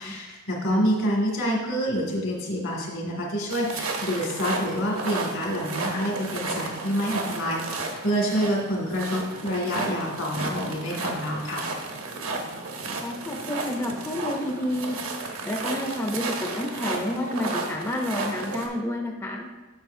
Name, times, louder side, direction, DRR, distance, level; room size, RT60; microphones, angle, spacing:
voice 1, 0.0-11.7, equal, 75° left, -2 dB, 2.0 m, -27 dB
sound 1, 3.5-18.7, right 3 dB, 75° right, 1.0 m, -33 dB
voice 2, 13.0-15.0 15.4-19.5, left 1 dB, 10° left, 1 dB, 0.4 m, -30 dB
8.9 x 6.6 x 2.6 m, 1.2 s
head